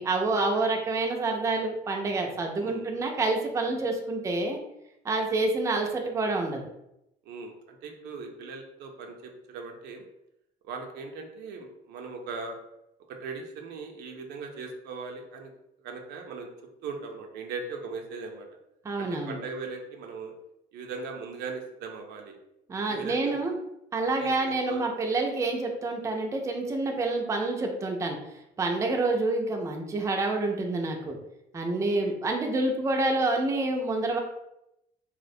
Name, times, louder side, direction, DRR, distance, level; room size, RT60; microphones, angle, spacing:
voice 1, 0.0-4.6 5.0-6.6 18.8-19.4 22.7-23.5 23.9-28.2 28.6-31.2 31.5-34.2, right 2 dB, 20° right, 2 dB, 0.3 m, -28 dB
voice 2, 2.6-2.9 5.4-5.5 7.3-10.0 10.6-12.6 13.1-15.5 15.8-16.5 16.8-18.5 19.0-20.3 20.7-22.4 22.9-23.4 24.2-24.3 24.7-24.9 28.7-29.0 31.7-32.1, right 4 dB, 80° right, 3 dB, 0.4 m, -39 dB
2.3 x 2.1 x 2.6 m, 0.85 s
cardioid pair, 110°, 17 cm